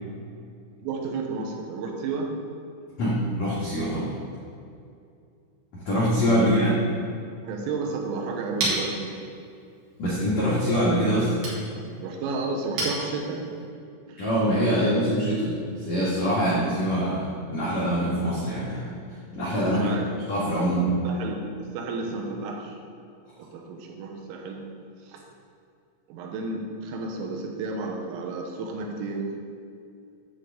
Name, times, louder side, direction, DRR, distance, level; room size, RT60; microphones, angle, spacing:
voice 1, 0.8-2.3 6.3-6.8 7.4-9.1 12.0-13.6 14.1-14.2 19.8-20.1 21.1-21.4 21.7-22.8 23.4-24.6 25.1-25.2 26.1-29.3, right 3 dB, 80° right, 1 dB, 3.4 m, -32 dB
voice 2, 3.0-4.1 5.7-6.7 10.0-11.3 14.2-18.8 19.3-21.0, equal, 75° left, -9 dB, 1.6 m, -24 dB
Chink clink, 8.0-13.7, right 2 dB, 55° right, 2.6 m, -35 dB
9.6 x 3.8 x 6.9 m, 2.5 s
omnidirectional pair, 5.9 m